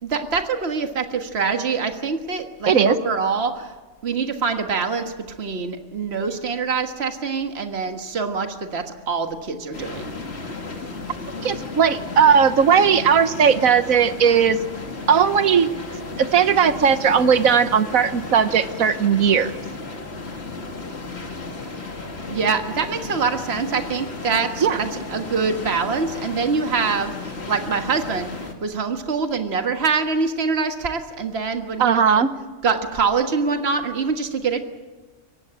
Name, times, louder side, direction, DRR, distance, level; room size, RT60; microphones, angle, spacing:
voice 1, 0.0-3.7 4.0-5.1 5.4-10.1 22.3-28.3 28.6-32.2 32.6-34.6, right 5 dB, 50° right, 6 dB, 1.8 m, -24 dB
voice 2, 2.7-3.0 11.4-14.6 15.1-15.7 16.2-19.5 24.6-24.8 31.8-32.3, right 7 dB, 90° right, 11 dB, 1.5 m, -17 dB
sound 1, 9.7-28.5, left 3 dB, 50° left, 2.4 m, -34 dB
23.5 x 18.0 x 8.8 m, 1.2 s
omnidirectional pair, 1.4 m